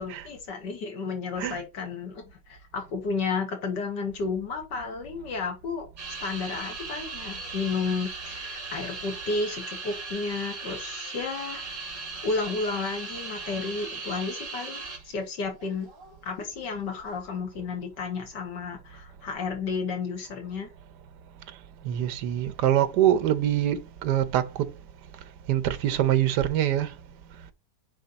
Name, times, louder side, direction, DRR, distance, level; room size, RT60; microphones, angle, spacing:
voice 1, 0.0-5.9 6.2-11.6 12.2-15.9 16.2-20.7, left 4 dB, 80° left, 2.5 m, -32 dB
sound 1, 6.0-15.2 15.5-16.2 16.8-17.1, right 3 dB, 55° right, 2.5 m, -38 dB
voice 2, 21.8-24.5 25.5-26.9, right 11 dB, 75° right, 1.4 m, -24 dB
9.2 x 3.6 x 4.1 m
omnidirectional pair, 1.9 m